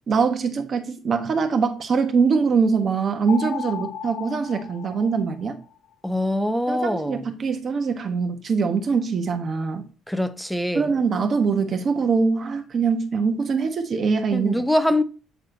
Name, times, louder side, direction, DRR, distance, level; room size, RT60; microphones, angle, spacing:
voice 1, 0.1-5.6 6.7-9.8 10.7-14.6, right 5 dB, 35° right, 1.2 m, -23 dB
sound 1, 3.3-5.7, left 8 dB, 60° left, 1.4 m, -35 dB
voice 2, 6.0-7.3 10.1-10.9 14.3-15.0, left 1 dB, ahead, 0.5 m, -23 dB
8.1 x 4.2 x 3.9 m
cardioid pair, 155°, 0 cm